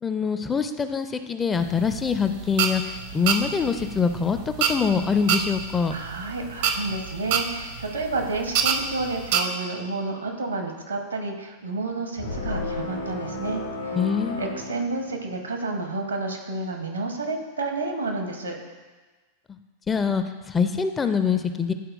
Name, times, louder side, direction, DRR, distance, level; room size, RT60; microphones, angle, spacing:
voice 1, 0.0-4.4 4.7-5.9 13.9-14.8 19.5-19.6 19.9-21.7, left 6 dB, 15° left, 9 dB, 0.4 m, -24 dB
sound 1, 1.6-9.4, right 7 dB, 50° right, 0.6 m, -27 dB
voice 2, 5.9-14.0 14.4-18.6, right 3 dB, 80° right, 2 dB, 1.0 m, -30 dB
sound 2, 12.2-15.5, left 2 dB, 75° left, 1.2 m, -33 dB
11.0 x 4.4 x 2.5 m, 1.3 s
figure-of-eight pair, 90°, 0 cm